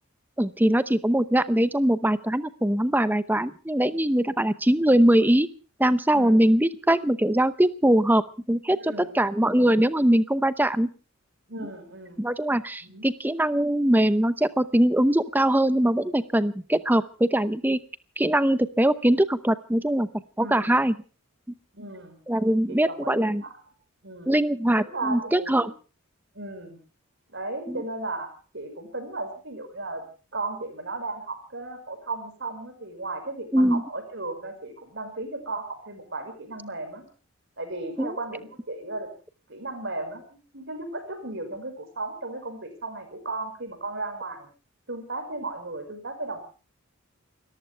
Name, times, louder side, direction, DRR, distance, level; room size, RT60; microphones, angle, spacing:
voice 1, 0.4-5.5 5.8-8.2 8.5-10.9 12.2-17.8 18.2-20.1 20.4-20.9 22.3-23.4 24.3-25.7 27.7-27.8 33.5-33.8 38.0-38.2, right 1 dB, 10° right, 14 dB, 0.8 m, -22 dB
voice 2, 6.1-6.5 8.8-9.5 11.5-12.2 12.8-13.1 20.4-20.8 21.7-22.2 22.7-23.5 24.0-24.3 24.8-25.7 26.3-26.8 27.3-30.0 30.3-37.1 37.6-39.1 39.5-40.2 40.5-44.5 44.9-46.4, right 2 dB, 55° right, 7 dB, 5.5 m, -35 dB
29.5 x 14.5 x 3.4 m, 0.37 s
head